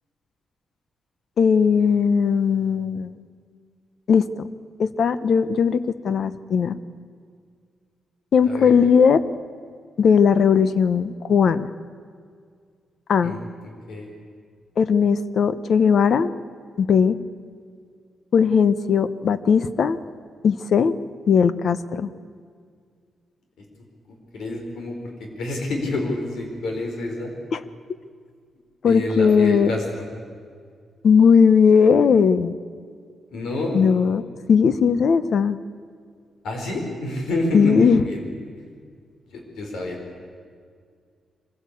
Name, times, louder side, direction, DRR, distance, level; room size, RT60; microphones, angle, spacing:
voice 1, 1.4-3.1 4.1-4.5 4.8-6.8 8.3-9.2 10.0-11.7 13.1-13.3 14.8-16.3 16.8-17.2 18.3-20.0 20.4-20.9 21.3-22.1 27.5-27.6 28.8-29.7 31.0-32.6 33.7-34.2 34.5-35.6 37.5-38.0, left 6 dB, 50° left, 14 dB, 0.8 m, -18 dB
voice 2, 24.1-27.3 28.8-30.0 33.3-33.8 36.4-38.3 39.3-40.0, left 2 dB, 75° left, 2 dB, 4.9 m, -28 dB
24.0 x 16.0 x 8.4 m, 2.1 s
wide cardioid pair, 175°, 0 cm